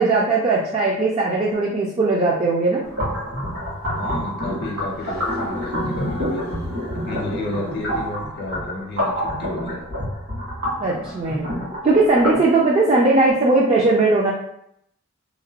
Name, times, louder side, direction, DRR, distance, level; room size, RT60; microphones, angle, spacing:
voice 1, 0.0-2.8 10.8-11.5 11.8-14.3, right 3 dB, 30° right, -3 dB, 0.3 m, -18 dB
sound 1, 2.8-12.4, equal, 65° right, 1.5 m, -28 dB
sound 2, 2.8-3.5 4.9-8.1, left 1 dB, 80° right, 1.4 m, -36 dB
voice 2, 3.9-6.4 6.9-9.8, left 1 dB, 50° left, -2 dB, 0.5 m, -32 dB
2.9 x 2.1 x 2.8 m, 0.73 s
head